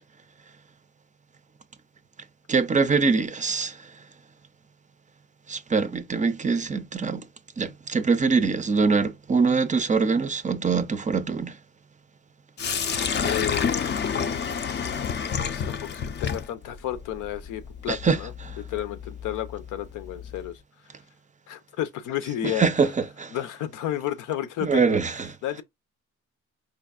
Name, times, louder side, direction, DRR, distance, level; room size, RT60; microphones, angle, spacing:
voice 1, 2.5-3.8 5.5-7.3 7.6-11.5 17.9-18.2 22.6-23.3 24.6-25.3, right 4 dB, 25° right, 0.4 m, -23 dB
Sink (filling or washing), 12.6-20.5, left 6 dB, 35° left, 0.4 m, -30 dB
voice 2, 13.2-13.9 15.5-18.3 18.6-20.6 21.5-22.7 23.3-25.0 25.4-25.6, left 12 dB, 85° left, 0.6 m, -32 dB
4.5 x 2.5 x 2.4 m
cardioid pair, 90°, 30 cm